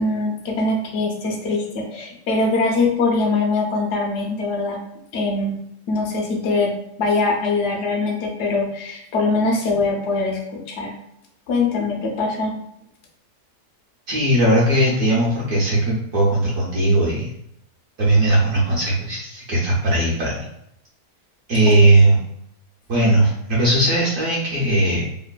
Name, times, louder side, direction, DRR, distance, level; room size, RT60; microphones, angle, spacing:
voice 1, 0.0-4.8 5.1-5.5 5.9-10.9 11.5-12.5 21.8-21.9, left 3 dB, 75° left, 1 dB, 0.6 m, -22 dB
voice 2, 14.1-17.3 18.0-20.4 21.5-22.2 22.9-25.0, right 1 dB, 60° right, -6 dB, 0.9 m, -18 dB
3.1 x 2.1 x 2.2 m, 0.78 s
omnidirectional pair, 1.7 m